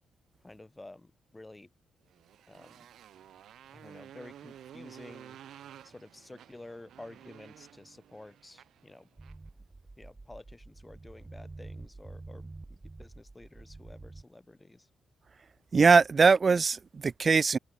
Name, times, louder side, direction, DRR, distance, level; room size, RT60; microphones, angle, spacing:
voice 1, 0.4-1.7 2.5-2.9 3.7-5.4 5.8-9.1 10.0-14.9, left 2 dB, 20° left, 3.4 m, -51 dB
Motorcycle, 2.1-9.5, right 10 dB, 65° right, 1.3 m, -52 dB
sound 1, 9.2-14.2, right 2 dB, 25° right, 1.2 m, -47 dB
voice 2, 15.7-17.6, right 5 dB, 45° right, 0.4 m, -21 dB
hypercardioid pair, 40°, 0 cm